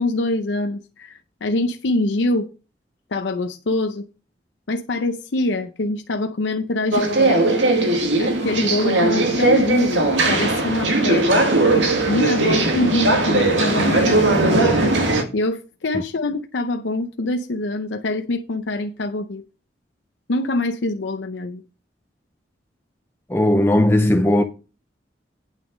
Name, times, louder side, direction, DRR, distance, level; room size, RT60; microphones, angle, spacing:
voice 1, 0.0-2.5 3.1-4.1 4.7-7.6 8.2-10.0 10.3-14.7 15.3-19.4 20.3-21.6, left 2 dB, 85° left, 0.7 m, -24 dB
sound 1, 6.9-15.2, right 2 dB, 90° right, 2.0 m, -18 dB
voice 2, 23.3-24.4, left 1 dB, 15° left, 0.6 m, -17 dB
9.2 x 6.2 x 5.2 m
head